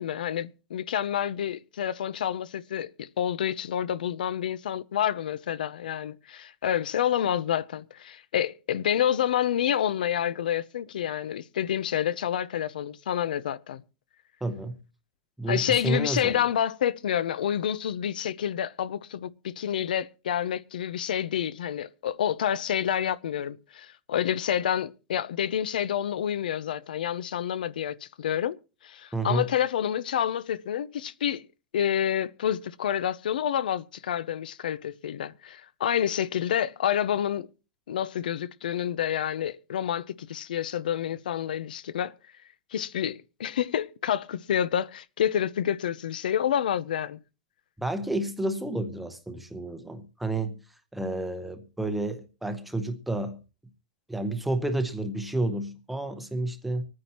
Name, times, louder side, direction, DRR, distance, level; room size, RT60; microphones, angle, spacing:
voice 1, 0.0-13.8 15.5-28.6 28.8-31.4 31.7-37.5 37.9-42.1 42.7-47.2, left 10 dB, 75° left, 0.7 m, -28 dB
voice 2, 14.4-14.7 15.4-16.4 29.1-29.4 47.8-50.5 50.9-53.4 54.1-56.8, right 2 dB, ahead, 0.7 m, -30 dB
25.0 x 9.6 x 2.9 m
supercardioid pair, 180°, 5 cm